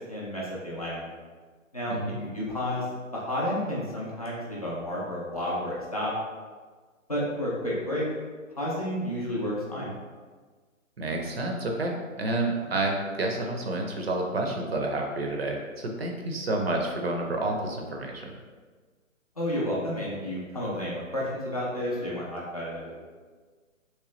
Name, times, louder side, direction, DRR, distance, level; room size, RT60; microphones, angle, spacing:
voice 1, 0.1-1.0 1.7-2.9 3.1-6.1 7.1-8.1 8.5-9.9 12.6-12.7 19.4-22.9, left 1 dB, 30° left, -7 dB, 0.4 m, -31 dB
voice 2, 11.0-18.3, right 2 dB, 50° right, 1 dB, 0.5 m, -29 dB
3.1 x 3.0 x 3.0 m, 1.4 s
figure-of-eight pair, 145°, 41 cm